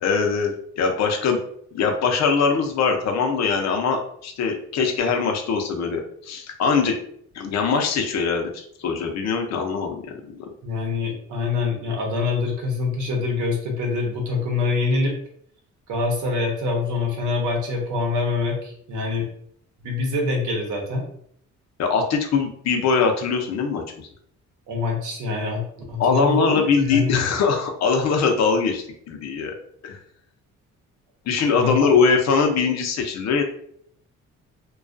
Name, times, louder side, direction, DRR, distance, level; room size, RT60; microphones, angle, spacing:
voice 1, 0.0-1.4 1.7-7.0 7.3-10.5 21.8-24.1 26.0-29.6 29.8-30.0 31.3-33.4, left 5 dB, 60° left, 3 dB, 0.6 m, -22 dB
voice 2, 10.6-15.1 15.9-19.3 19.8-21.0 24.7-25.6 25.9-27.2 31.5-32.0, left 3 dB, 80° right, 0 dB, 0.9 m, -25 dB
2.3 x 2.3 x 2.4 m, 0.65 s
cardioid pair, 90°, 30 cm